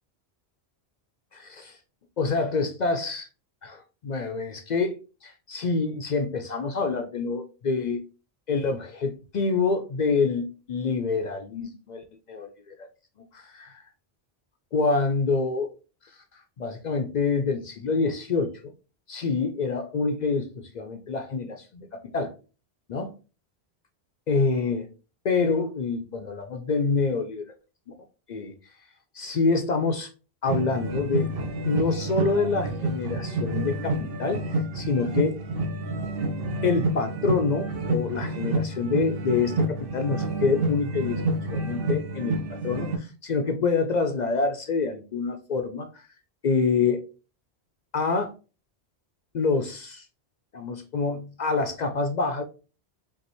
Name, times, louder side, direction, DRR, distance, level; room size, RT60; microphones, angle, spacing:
voice 1, 1.3-1.8 2.2-3.3 3.6-8.0 8.5-12.9 13.3-13.8 14.7-15.7 16.0-16.2 16.6-18.7 19.1-22.3 22.9-23.1 24.3-24.9 25.2-27.4 28.3-28.5 29.1-30.1 30.4-31.3 31.6-35.4 36.6-41.2 41.5-46.0 46.4-47.0 47.9-48.3 49.3-50.1 50.5-52.4, left 4 dB, 55° left, 6 dB, 0.5 m, -26 dB
sound 1, 30.5-43.0, right 2 dB, 65° right, 0.8 m, -29 dB
5.3 x 2.6 x 3.0 m, 0.34 s
omnidirectional pair, 1.1 m